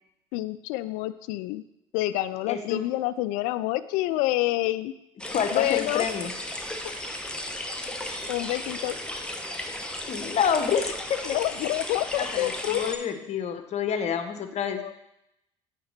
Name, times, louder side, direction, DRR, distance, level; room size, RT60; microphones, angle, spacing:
voice 1, 0.3-1.6 1.9-4.9 5.5-6.1 8.3-9.0 11.2-12.8 14.8-14.9, left 16 dB, 65° left, 15 dB, 0.4 m, -28 dB
voice 2, 2.5-2.8 5.3-6.3 10.1-11.2 12.2-14.8, left 7 dB, 50° left, 8 dB, 0.9 m, -28 dB
sound 1, 5.2-13.0, left 1 dB, 5° left, 1.0 m, -35 dB
9.3 x 3.7 x 4.4 m, 0.85 s
hypercardioid pair, 60°, 15 cm